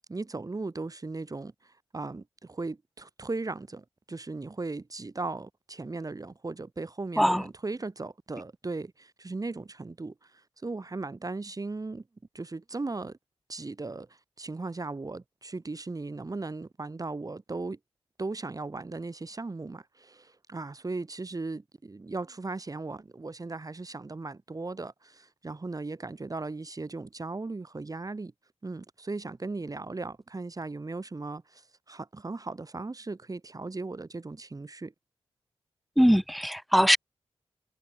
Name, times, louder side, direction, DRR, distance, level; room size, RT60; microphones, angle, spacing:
voice 1, 0.1-12.0 12.3-13.2 13.5-17.8 18.2-28.3 28.6-34.9, right 3 dB, 35° right, 1.3 m, -37 dB
voice 2, 36.0-37.0, equal, ahead, 0.4 m, -21 dB
supercardioid pair, 40°, 11 cm